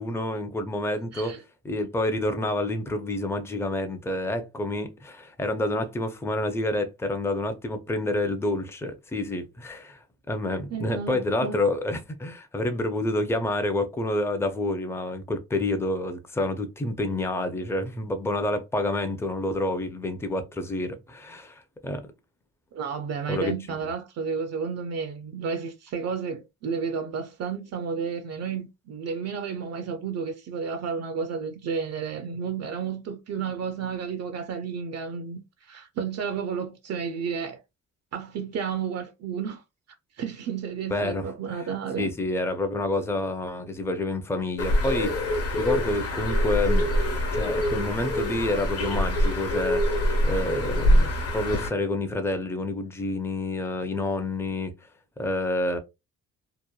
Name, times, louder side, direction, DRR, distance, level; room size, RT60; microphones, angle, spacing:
voice 1, 0.0-1.3 1.6-22.1 23.3-23.5 23.8-23.9 40.9-41.3 42.0-46.9 47.3-49.8 50.2-54.7 55.2-55.8, left 2 dB, 10° left, 0.5 m, -28 dB
voice 2, 10.7-11.6 22.7-37.6 38.1-39.6 40.2-42.1, right 6 dB, 60° right, 0.5 m, -32 dB
Bird, 44.6-51.7, equal, 50° left, 1.0 m, -24 dB
2.9 x 2.1 x 2.2 m
cardioid pair, 90°, 30 cm